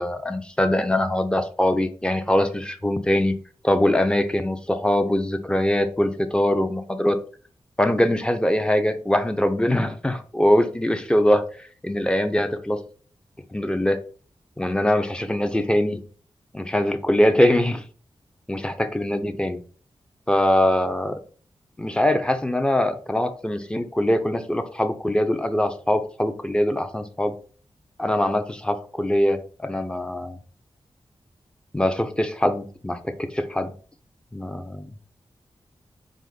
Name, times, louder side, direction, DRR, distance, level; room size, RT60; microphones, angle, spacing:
voice 1, 0.0-3.3 3.6-7.2 7.8-11.4 11.8-12.8 13.5-14.0 14.6-16.0 16.5-17.8 18.5-19.6 20.3-21.2 21.8-27.3 28.0-30.4 31.7-33.7 34.3-34.9, left 1 dB, 10° left, 8 dB, 0.6 m, -22 dB
4.3 x 2.5 x 4.0 m, 0.41 s
cardioid pair, 50°, 10 cm